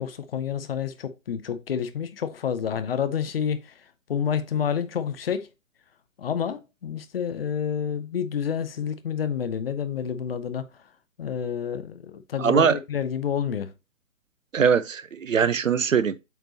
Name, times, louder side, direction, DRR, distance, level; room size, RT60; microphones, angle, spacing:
voice 1, 0.0-5.5 6.2-10.7 11.2-13.7, left 8 dB, 45° left, 0.9 m, -29 dB
voice 2, 12.4-12.8 14.5-16.2, right 7 dB, 70° right, 0.7 m, -21 dB
8.1 x 4.5 x 2.8 m
figure-of-eight pair, 125°, 40 cm